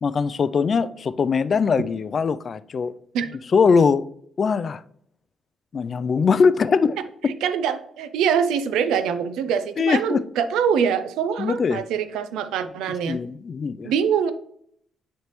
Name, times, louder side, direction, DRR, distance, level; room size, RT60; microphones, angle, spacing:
voice 1, 0.0-2.9 3.5-4.0 4.4-4.8 5.7-7.0 9.8-10.2 11.4-11.8 13.1-13.9, left 5 dB, 45° left, 0.3 m, -21 dB
voice 2, 7.3-13.2 13.8-14.3, right 7 dB, 90° right, 0.5 m, -24 dB
9.4 x 3.3 x 3.1 m
cardioid pair, 90°, 0 cm